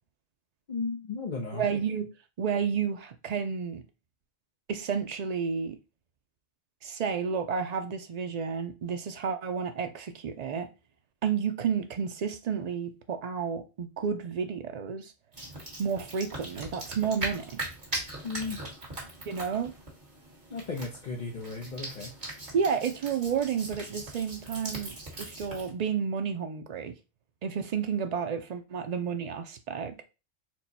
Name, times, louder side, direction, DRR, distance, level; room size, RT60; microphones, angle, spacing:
voice 1, 0.7-1.6 18.2-18.6 20.5-22.1, left 4 dB, 45° left, 0.8 m, -35 dB
voice 2, 1.5-2.1 2.4-3.8 4.7-5.8 6.8-10.7 11.2-15.1 15.8-17.6 19.3-19.7 22.5-26.9 27.4-30.0, right 6 dB, 70° right, 0.3 m, -31 dB
sound 1, 15.3-25.7, right 2 dB, 40° right, 1.7 m, -40 dB
4.6 x 2.2 x 4.0 m
omnidirectional pair, 1.3 m